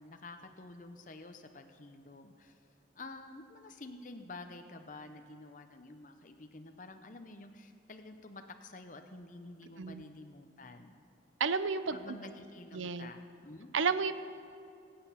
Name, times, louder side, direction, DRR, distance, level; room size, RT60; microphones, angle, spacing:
voice 1, 0.0-2.6 3.0-11.0 11.9-13.7, left 2 dB, 40° left, 6 dB, 0.7 m, -49 dB
voice 2, 11.4-12.2 12.7-13.1 13.7-14.1, right 5 dB, 85° right, 12 dB, 0.7 m, -32 dB
24.0 x 8.8 x 5.7 m, 2.5 s
head